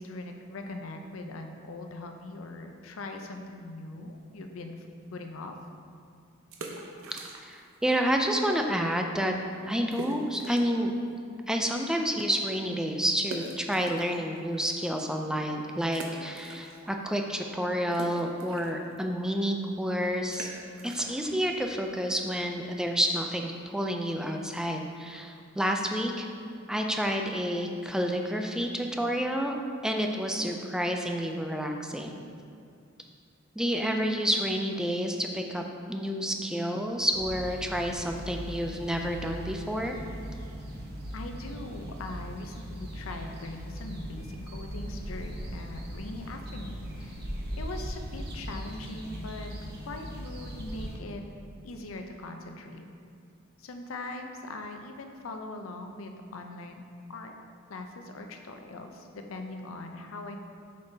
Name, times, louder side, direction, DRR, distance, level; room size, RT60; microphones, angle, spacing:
voice 1, 0.0-4.9 5.1-5.5 41.1-47.3 47.6-49.5 49.8-51.2 51.6-52.9 53.6-56.8 57.1-57.3 57.7-60.5, left 2 dB, 80° left, 4 dB, 0.5 m, -41 dB
sound 1, 6.4-7.8 8.0-8.1 8.7-8.8 9.1-9.2 9.9-10.8 11.3-11.4 13.2-14.6 15.1-15.2 15.9-17.1 17.3-22.8, right 2 dB, 90° right, 0.7 m, -44 dB
voice 2, 7.1-9.3 9.7-10.9 11.5-20.5 20.8-26.3 26.7-29.6 29.8-32.2 33.6-40.0, equal, 5° right, 3 dB, 0.4 m, -29 dB
sound 2, 37.1-51.0, equal, 55° right, 0.9 m, -39 dB
6.8 x 5.3 x 2.7 m, 2.3 s
head